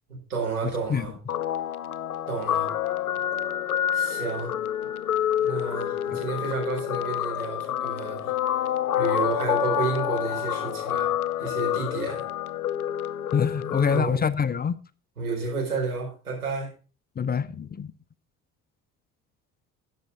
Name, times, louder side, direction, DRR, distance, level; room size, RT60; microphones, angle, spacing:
voice 1, 0.1-1.1 2.3-2.7 3.9-4.6 5.4-8.3 8.9-11.1 11.4-12.2 13.5-14.3 15.2-16.7, right 4 dB, 85° right, 4.7 m, -31 dB
Guitar, 1.3-14.0, left 11 dB, 85° left, 0.6 m, -28 dB
voice 2, 13.3-14.7 17.2-17.9, left 6 dB, 20° left, 0.7 m, -25 dB
13.5 x 9.4 x 3.7 m
figure-of-eight pair, 55°, 43 cm